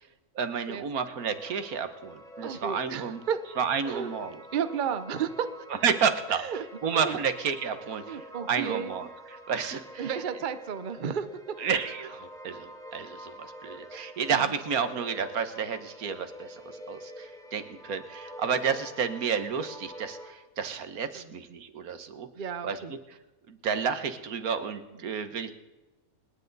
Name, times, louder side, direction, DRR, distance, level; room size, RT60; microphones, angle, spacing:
voice 1, 0.3-3.2 3.6-4.3 5.8-6.4 6.8-8.0 8.5-9.1 9.5-10.1 11.6-16.6 16.9-22.3 22.6-22.8 23.5-25.5, right 6 dB, 85° right, 10 dB, 1.6 m, -30 dB
sound 1, 1.2-20.3, equal, ahead, 1.7 m, -46 dB
voice 2, 2.4-3.4 3.8-4.1 4.5-5.5 6.3-6.6 7.0-7.2 8.0-8.9 10.0-11.6 14.3-14.6 21.1-21.3 22.4-22.9, right 7 dB, 40° right, 11 dB, 0.8 m, -33 dB
28.0 x 10.5 x 4.0 m, 1.1 s
omnidirectional pair, 1.5 m